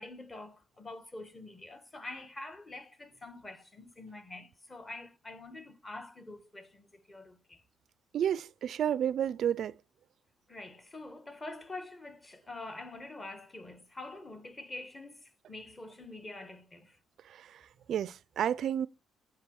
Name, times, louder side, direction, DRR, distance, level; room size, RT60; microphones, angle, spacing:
voice 1, 0.0-7.6 10.5-17.0, left 2 dB, 25° left, 1.7 m, -46 dB
voice 2, 8.1-9.7 17.9-18.9, right 9 dB, 65° right, 0.4 m, -30 dB
8.7 x 4.9 x 6.2 m
cardioid pair, 90°, 0 cm